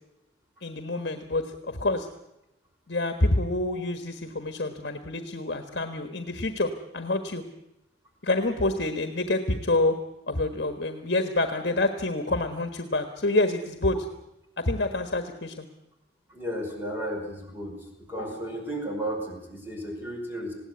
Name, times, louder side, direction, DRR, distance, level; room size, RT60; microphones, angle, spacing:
voice 1, 0.6-2.1 2.9-7.4 8.2-10.0 10.3-14.1 14.6-15.7, left 2 dB, 60° left, 7 dB, 1.4 m, -27 dB
voice 2, 16.3-17.8 18.1-20.5, right 1 dB, 10° right, 0 dB, 5.4 m, -33 dB
20.5 x 16.5 x 9.5 m, 0.89 s
head